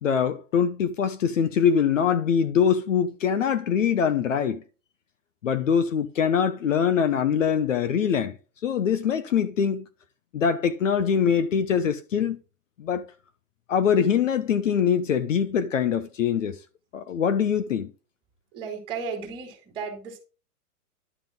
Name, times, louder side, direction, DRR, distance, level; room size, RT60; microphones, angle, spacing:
voice 1, 0.0-4.6 5.4-8.4 8.6-9.9 10.3-12.4 12.8-13.1 13.7-16.6 16.9-17.9, left 7 dB, 55° left, 1.1 m, -23 dB
voice 2, 18.5-20.2, right 5 dB, 10° right, 2.7 m, -34 dB
11.0 x 7.5 x 3.8 m
hypercardioid pair, 175°, 46 cm